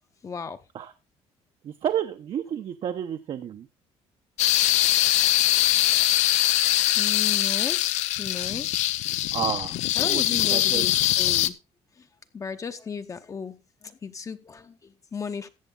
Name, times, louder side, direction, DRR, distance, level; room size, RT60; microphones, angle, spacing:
voice 1, 0.2-0.6 7.0-8.8 9.9-11.5 12.0-12.1 12.3-15.5, left 6 dB, 25° left, 0.8 m, -35 dB
voice 2, 1.6-3.7 9.3-10.2 10.5-10.9, right 9 dB, 50° right, 0.9 m, -30 dB
sound 1, 4.4-11.5, left 14 dB, 80° left, 0.7 m, -22 dB
14.0 x 8.1 x 3.9 m
cardioid pair, 130°, 12 cm